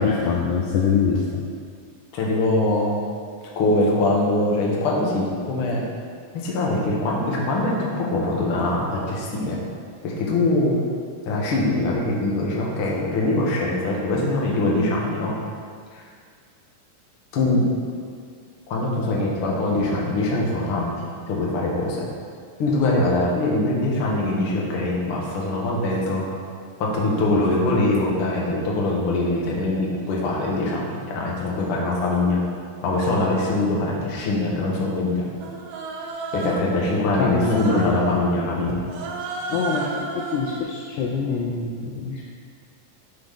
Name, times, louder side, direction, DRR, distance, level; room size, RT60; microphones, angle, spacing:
voice 1, 0.0-1.4 37.2-38.1 38.7-38.8 39.5-42.2, left 5 dB, 90° left, -2 dB, 1.7 m, -24 dB
voice 2, 2.1-3.0 3.5-5.8 6.3-9.6 10.0-10.7 11.2-15.3 15.9-16.0 17.3-17.7 18.7-20.9 21.3-22.1 22.6-26.2 26.8-32.4 32.8-35.2 36.3-38.7, left 2 dB, 70° left, -3 dB, 1.3 m, -23 dB
Human voice, 35.4-36.7 37.4-38.1 38.9-40.6, right 3 dB, 80° right, 2.3 m, -32 dB
11.5 x 4.0 x 3.5 m, 2.1 s
omnidirectional pair, 4.1 m